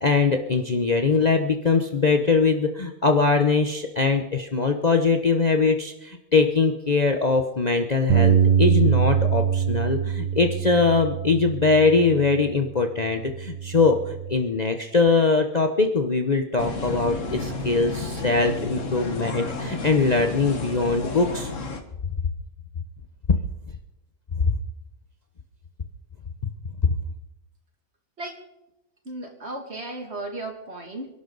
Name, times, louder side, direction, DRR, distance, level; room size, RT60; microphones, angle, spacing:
voice 1, 0.0-21.5 24.4-24.6, left 4 dB, 35° left, 5 dB, 0.9 m, -22 dB
Bass guitar, 8.1-12.6 13.2-14.3, right 8 dB, 65° right, 1.2 m, -23 dB
sound 1, 16.6-21.8, left 3 dB, 60° left, 1.9 m, -32 dB
voice 2, 29.0-31.1, right 2 dB, 45° right, 2 dB, 2.7 m, -35 dB
27.5 x 11.5 x 4.0 m, 0.92 s
omnidirectional pair, 1.5 m